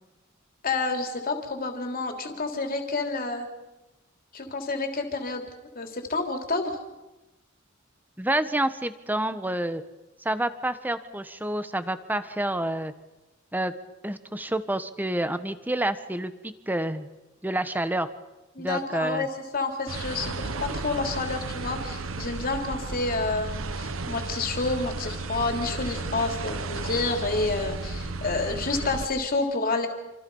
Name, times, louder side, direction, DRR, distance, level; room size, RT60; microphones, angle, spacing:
voice 1, 0.6-3.5 4.3-5.4 5.7-6.8 18.5-19.3 19.5-29.9, left 3 dB, 45° left, 4 dB, 3.3 m, -29 dB
voice 2, 8.2-9.8 10.2-12.9 13.5-13.7 14.0-17.1 17.4-18.1 18.6-19.3, right 1 dB, 10° right, 11 dB, 1.2 m, -28 dB
sound 1, 19.9-29.1, right 3 dB, 70° right, 1.3 m, -33 dB
27.5 x 26.5 x 5.6 m, 1.0 s
head